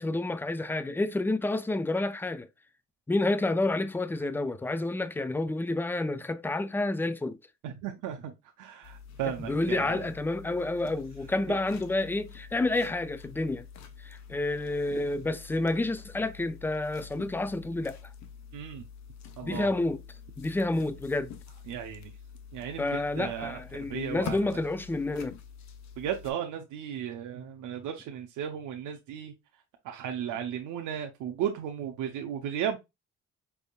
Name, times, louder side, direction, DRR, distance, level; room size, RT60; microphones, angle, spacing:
voice 1, 0.0-2.5 3.1-7.4 9.5-13.6 14.0-18.0 19.4-20.0 20.4-21.3 22.8-25.3, left 2 dB, 5° left, 0.4 m, -29 dB
voice 2, 7.6-10.1 11.5-11.6 18.5-18.8 19.4-19.7 21.7-22.1 22.5-24.6 26.0-29.3 29.8-32.8, right 9 dB, 85° right, 0.7 m, -35 dB
sound 1, 8.8-26.3, left 7 dB, 65° left, 0.9 m, -46 dB
5.2 x 3.5 x 2.3 m
cardioid pair, 90°, 30 cm